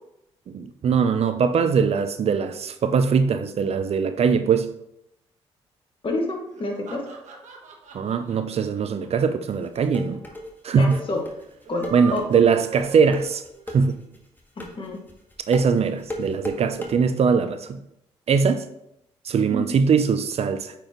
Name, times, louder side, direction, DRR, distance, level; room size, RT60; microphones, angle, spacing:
voice 1, 0.5-4.7 7.9-10.2 10.6-11.0 11.9-13.4 13.7-14.0 15.5-17.7 18.3-18.6 19.2-20.7, right 6 dB, 55° right, 0.5 m, -21 dB
voice 2, 6.0-7.1 10.8-11.2 11.7-12.2 14.6-15.0 19.5-19.7, left 2 dB, 40° left, 1.9 m, -28 dB
sound 1, 6.5-9.8 10.1-10.2 10.4-10.5 11.5-13.6, right 6 dB, 70° right, 1.2 m, -40 dB
sound 2, 9.5-16.9, left 1 dB, 15° left, 1.6 m, -35 dB
8.6 x 4.5 x 3.0 m
hypercardioid pair, 50°, 13 cm